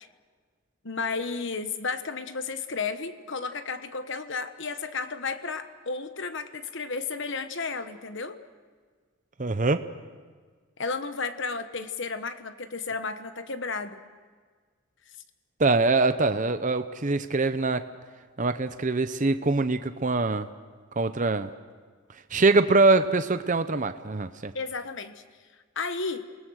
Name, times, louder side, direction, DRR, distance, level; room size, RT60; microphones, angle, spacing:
voice 1, 0.8-8.4 10.8-14.0 24.5-25.2 25.7-26.2, left 4 dB, 55° left, 10 dB, 1.2 m, -33 dB
voice 2, 9.4-9.8 15.6-17.8 18.4-20.5 21.0-21.5 22.3-24.5, right 3 dB, 35° right, 10 dB, 0.7 m, -23 dB
28.5 x 20.0 x 6.4 m, 1.6 s
head